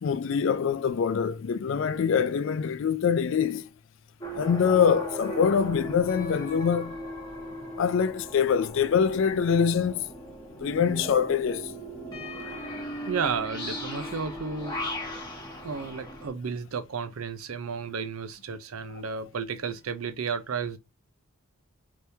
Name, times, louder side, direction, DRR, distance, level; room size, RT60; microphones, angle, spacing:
voice 1, 0.0-3.7 4.3-7.0 7.8-10.1 10.6-11.7, left 7 dB, 60° left, 0.3 m, -24 dB
sound 1, 4.2-16.3, equal, 20° left, 1.2 m, -37 dB
voice 2, 13.1-14.8 15.6-20.8, right 5 dB, 80° right, 0.5 m, -32 dB
3.4 x 2.9 x 2.7 m
head